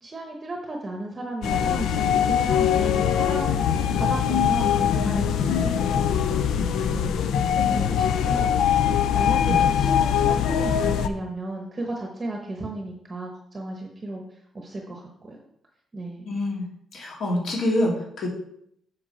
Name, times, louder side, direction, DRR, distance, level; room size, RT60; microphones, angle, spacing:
voice 1, 0.0-7.1 7.5-8.8 9.1-15.4 15.9-16.3, right 2 dB, 20° right, 1 dB, 0.9 m, -34 dB
sound 1, 1.4-11.1, left 8 dB, 90° left, 0.5 m, -22 dB
voice 2, 16.2-16.6 16.9-18.3, left 1 dB, 55° left, -1 dB, 2.3 m, -26 dB
7.5 x 6.3 x 4.3 m, 0.71 s
cardioid pair, 180°, 0 cm